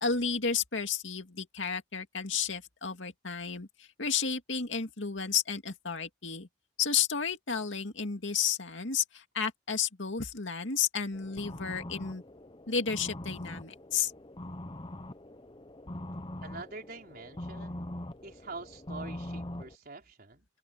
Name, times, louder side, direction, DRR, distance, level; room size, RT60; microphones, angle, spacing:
voice 1, 0.0-6.5 6.8-12.2 12.7-14.1, left 6 dB, 70° left, 2.4 m, -32 dB
sound 1, 11.1-19.8, left 1 dB, 25° left, 0.9 m, -42 dB
voice 2, 16.4-17.8 18.2-20.4, right 3 dB, 50° right, 4.6 m, -45 dB
open air
head